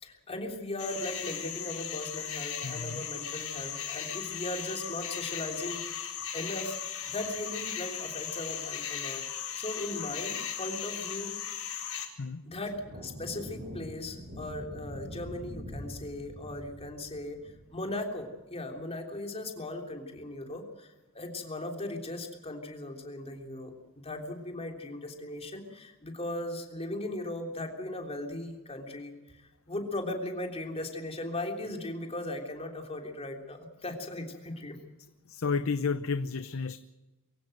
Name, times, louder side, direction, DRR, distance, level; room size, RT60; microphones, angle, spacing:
voice 1, 0.0-6.8 7.1-9.2 9.6-11.3 12.4-23.7 24.0-29.1 29.7-34.8, left 1 dB, 30° left, 3 dB, 3.4 m, -38 dB
sound 1, 0.8-12.1, left 9 dB, 90° left, 4.5 m, -37 dB
voice 2, 2.6-3.0 12.2-12.4 35.3-36.8, left 4 dB, 70° left, 12 dB, 0.7 m, -31 dB
sound 2, 12.7-18.3, equal, 60° right, 7.8 m, -44 dB
24.0 x 16.0 x 7.9 m, 1.1 s
head